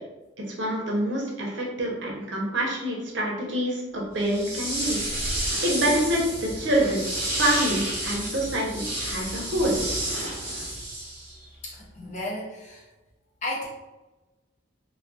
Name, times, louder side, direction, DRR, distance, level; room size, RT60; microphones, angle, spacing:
voice 1, 0.4-5.1 5.6-7.0 7.4-9.8, right 1 dB, 65° right, -2 dB, 0.6 m, -26 dB
sound 1, 4.2-11.4, right 1 dB, 10° right, 0.8 m, -31 dB
sound 2, 4.6-10.9, equal, 80° left, 0.5 m, -40 dB
voice 2, 11.6-12.9 13.4-13.7, left 1 dB, 40° left, -4 dB, 0.6 m, -33 dB
2.2 x 2.2 x 2.6 m, 1.1 s
head